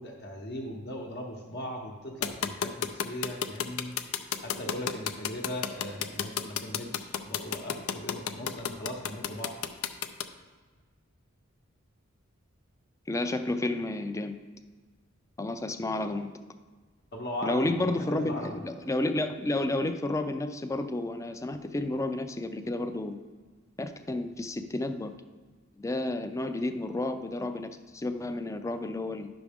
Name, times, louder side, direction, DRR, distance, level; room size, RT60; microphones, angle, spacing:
voice 1, 0.0-4.0 4.4-9.6 17.1-18.6, equal, 50° left, -3 dB, 0.8 m, -39 dB
sound 1, 2.2-10.2, left 8 dB, 80° left, 0.5 m, -31 dB
voice 2, 13.1-14.3 15.4-16.3 17.4-23.2 23.8-25.1 25.8-29.3, left 2 dB, 15° left, 9 dB, 0.4 m, -31 dB
10.5 x 6.1 x 3.5 m, 1.4 s
head